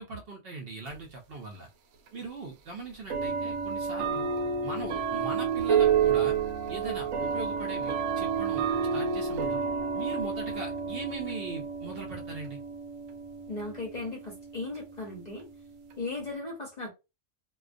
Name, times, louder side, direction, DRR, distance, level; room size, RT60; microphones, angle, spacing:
voice 1, 0.0-1.7 2.1-4.3 4.6-6.3 6.7-9.6 9.9-12.6, right 3 dB, 60° right, 0.7 m, -40 dB
sound 1, 0.9-1.0 2.1-2.2 3.1-16.3, right 6 dB, 90° right, 1.0 m, -30 dB
voice 2, 13.5-15.5 16.0-16.9, left 3 dB, 45° left, 0.6 m, -37 dB
2.2 x 2.2 x 2.4 m
omnidirectional pair, 1.3 m